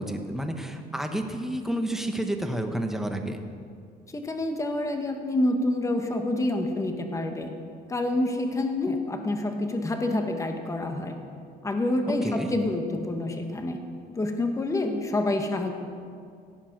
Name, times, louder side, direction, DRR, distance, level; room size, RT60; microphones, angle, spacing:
voice 1, 0.0-3.4 12.2-12.5, right 1 dB, ahead, 4 dB, 1.2 m, -30 dB
voice 2, 4.1-7.5 7.9-11.1 11.6-13.8 14.1-15.7, left 2 dB, 20° left, 4 dB, 1.4 m, -27 dB
16.0 x 8.9 x 6.1 m, 2.3 s
cardioid pair, 110°, 17 cm